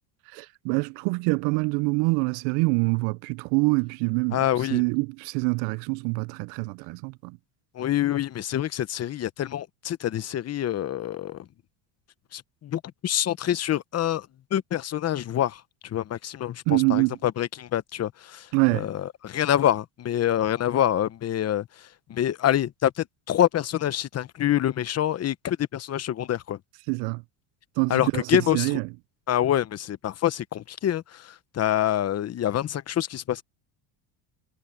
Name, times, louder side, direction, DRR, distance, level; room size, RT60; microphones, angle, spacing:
voice 1, 0.3-4.4 4.7-7.4 16.7-17.1 18.5-18.9 26.9-27.2 27.8-28.2 28.5-28.8, right 30 dB, 65° right, 0.5 m, -25 dB
voice 2, 4.3-4.8 7.7-11.5 12.3-14.3 14.5-18.5 18.7-26.6 27.9-28.7 29.3-33.4, left 11 dB, 30° left, 1.0 m, -26 dB
supercardioid pair, 120°, 48 cm